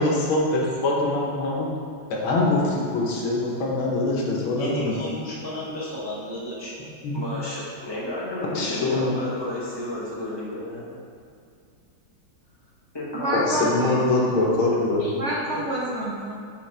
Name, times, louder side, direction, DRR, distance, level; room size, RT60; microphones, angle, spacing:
voice 1, 0.0-1.7 2.1-5.0 7.0-7.2 8.6-9.1 13.3-15.1, left 2 dB, 80° left, -3 dB, 1.8 m, -23 dB
voice 2, 4.6-6.7, left 1 dB, 20° right, -8 dB, 0.4 m, -33 dB
voice 3, 7.1-10.9 12.9-13.7 15.5-15.6, left 1 dB, 15° left, -7 dB, 1.1 m, -31 dB
voice 4, 13.1-14.4 15.1-16.4, right 1 dB, 60° right, -6 dB, 0.7 m, -28 dB
6.5 x 5.6 x 3.3 m, 2.3 s
omnidirectional pair, 2.2 m